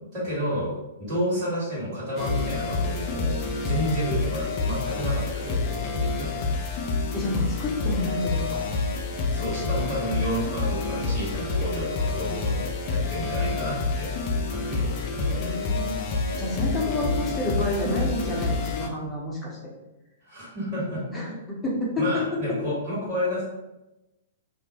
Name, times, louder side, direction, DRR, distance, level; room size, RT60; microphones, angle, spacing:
voice 1, 0.1-6.4 9.3-14.2 14.5-15.5 20.2-21.0 22.0-23.4, equal, 30° right, -11 dB, 1.2 m, -30 dB
sound 1, 2.2-18.9, left 3 dB, 35° left, 0.3 m, -28 dB
voice 2, 7.1-8.6 15.2-15.9 16.4-19.6 21.1-22.0, left 1 dB, 15° left, -4 dB, 0.7 m, -29 dB
2.3 x 2.0 x 2.8 m, 0.96 s
figure-of-eight pair, 105°, 0 cm